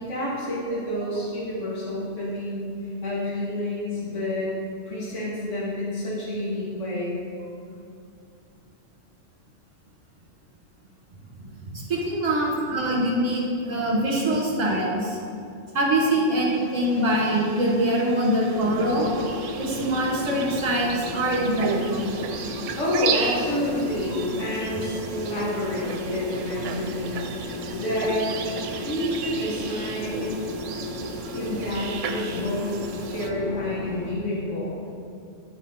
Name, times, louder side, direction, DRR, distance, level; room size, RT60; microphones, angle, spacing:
voice 1, 0.0-2.7 3.0-4.5 4.9-7.2 22.8-28.3 28.7-30.5 31.3-32.8 33.1-34.8, left 1 dB, 70° left, -7 dB, 2.3 m, -29 dB
voice 2, 11.7-15.2 15.7-19.1 19.6-22.1 26.1-26.2, right 1 dB, 35° right, -3 dB, 1.5 m, -24 dB
sound 1, 16.5-33.3, right 6 dB, 75° right, 0.9 m, -35 dB
sound 2, 18.5-34.1, left 1 dB, 85° left, 1.1 m, -35 dB
10.0 x 4.4 x 4.0 m, 2.4 s
omnidirectional pair, 1.3 m